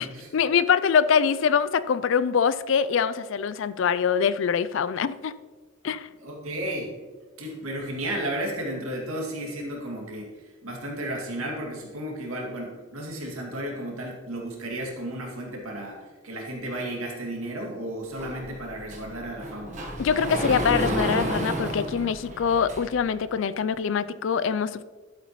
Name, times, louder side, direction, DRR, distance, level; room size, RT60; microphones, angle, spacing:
voice 1, 0.3-5.3 5.8-6.1 20.0-24.8, left 6 dB, 60° left, 16 dB, 0.3 m, -24 dB
voice 2, 6.2-6.9 7.4-10.3 10.6-19.8, right 1 dB, 80° right, -1 dB, 2.3 m, -33 dB
Sliding door, 18.2-23.1, equal, 35° right, 1.2 m, -31 dB
11.5 x 8.1 x 3.1 m, 1.4 s
head